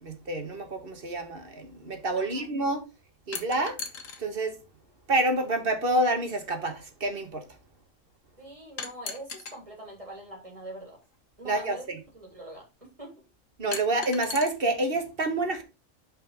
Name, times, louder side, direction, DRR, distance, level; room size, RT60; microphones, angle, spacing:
voice 1, 0.0-2.8 3.3-3.8 4.2-4.6 5.1-7.4 11.5-12.0 13.6-15.6, right 2 dB, 45° right, 1.6 m, -28 dB
voice 2, 2.2-2.5 8.4-11.0 11.4-13.2, right 1 dB, 25° right, 3.3 m, -44 dB
sound 1, 3.3-4.2 5.4-5.5 8.8-9.6 11.0-11.1 13.7-14.5, left 5 dB, 80° left, 1.6 m, -37 dB
5.6 x 5.4 x 5.1 m
omnidirectional pair, 1.3 m